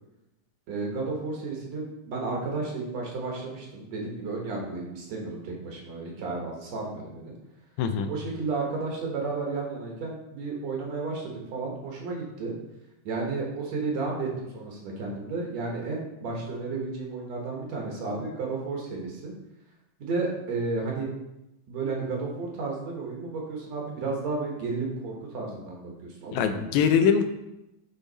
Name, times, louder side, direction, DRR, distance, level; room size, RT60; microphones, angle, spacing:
voice 1, 0.7-7.3 8.1-12.5 13.1-19.3 20.0-21.1 21.7-26.7, right 3 dB, 70° right, -1 dB, 2.3 m, -32 dB
voice 2, 7.8-8.1 26.3-27.3, left 7 dB, 90° left, 7 dB, 2.0 m, -22 dB
7.9 x 3.8 x 3.9 m, 0.91 s
omnidirectional pair, 3.3 m